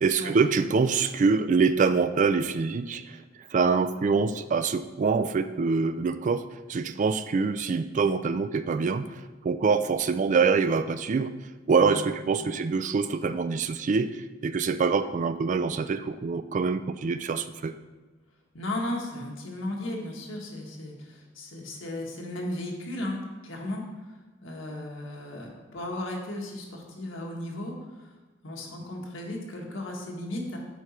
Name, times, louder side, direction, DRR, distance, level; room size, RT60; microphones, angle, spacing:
voice 1, 0.0-3.2 3.5-6.4 6.7-9.1 9.4-11.3 11.7-17.7, right 5 dB, 40° right, 11 dB, 0.3 m, -25 dB
voice 2, 18.5-23.8 24.4-27.7 28.0-28.1 28.4-30.6, left 1 dB, 90° left, -1 dB, 1.5 m, -35 dB
8.0 x 5.3 x 4.3 m, 1.2 s
head